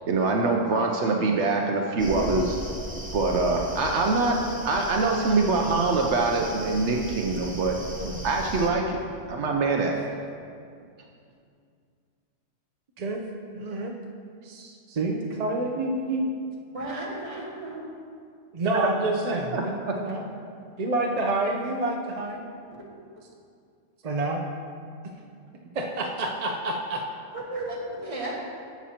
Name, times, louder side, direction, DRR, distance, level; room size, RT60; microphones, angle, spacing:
voice 1, 0.1-2.6 3.1-4.4 4.6-7.8 8.2-9.0 9.3-10.0 18.7-18.9 19.3-20.0, right 3 dB, 70° right, 1 dB, 0.9 m, -24 dB
sound 1, 2.0-8.7, right 1 dB, 5° right, 0.9 m, -37 dB
voice 2, 13.5-13.9 14.4-16.3 18.5-20.2 20.8-22.4 24.0-24.4 25.7-27.0, right 2 dB, 45° right, 1 dB, 0.5 m, -28 dB
voice 3, 16.7-17.8 27.3-28.4, right 2 dB, 30° right, -4 dB, 1.4 m, -34 dB
11.0 x 7.3 x 2.8 m, 2.3 s
omnidirectional pair, 1.3 m